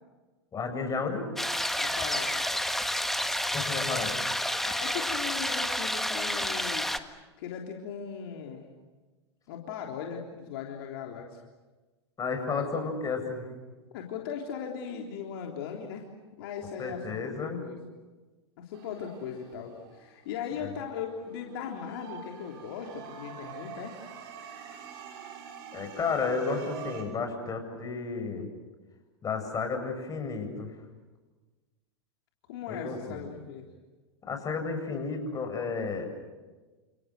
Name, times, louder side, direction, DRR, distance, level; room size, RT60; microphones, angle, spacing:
voice 1, 0.5-1.3 3.5-4.2 12.2-13.5 16.8-17.6 25.7-28.5 29.2-30.7 32.7-33.3 34.2-36.1, left 4 dB, 25° left, 5 dB, 8.0 m, -32 dB
sound 1, 1.4-7.0, left 1 dB, ahead, 1.7 m, -30 dB
voice 2, 1.8-2.5 4.6-6.9 7.4-8.7 9.5-11.4 12.5-12.6 13.9-16.1 16.4-17.4 17.6-17.8 18.6-24.0 32.5-33.7, left 7 dB, 60° left, 1 dB, 3.5 m, -38 dB
sound 2, 18.7-20.6 21.2-27.0, right 7 dB, 60° right, 6.3 m, -46 dB
30.0 x 28.5 x 6.7 m, 1.3 s
figure-of-eight pair, 90°, 14 cm